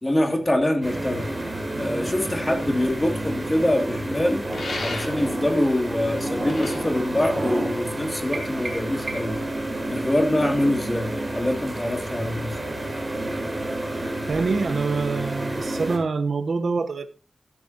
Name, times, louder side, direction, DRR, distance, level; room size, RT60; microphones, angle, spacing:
voice 1, 0.0-1.3 1.8-4.4 4.8-9.4 9.9-12.6, left 1 dB, 20° left, 2.8 m, -24 dB
sound 1, 0.8-16.0, right 1 dB, 20° right, 5.4 m, -30 dB
sound 2, 4.5-5.5 6.3-8.0, left 3 dB, 75° left, 6.8 m, -35 dB
sound 3, 8.3-9.5, right 3 dB, 60° right, 3.3 m, -36 dB
voice 2, 14.3-17.1, right 4 dB, 75° right, 1.1 m, -25 dB
13.5 x 13.0 x 2.9 m
wide cardioid pair, 95°, 0 cm